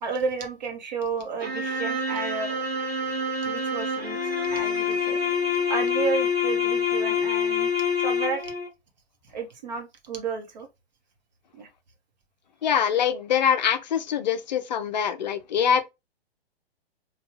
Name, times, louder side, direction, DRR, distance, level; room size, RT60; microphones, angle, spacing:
voice 1, 0.0-2.6 3.4-5.2 5.7-7.7 8.0-8.4 9.3-10.7 11.5-11.7, right 5 dB, 45° right, 0.9 m, -32 dB
sound 1, 1.4-8.7, left 5 dB, 85° right, 1.1 m, -26 dB
voice 2, 12.6-15.8, left 8 dB, 45° left, 0.5 m, -24 dB
3.3 x 2.3 x 3.0 m
figure-of-eight pair, 115°, 31 cm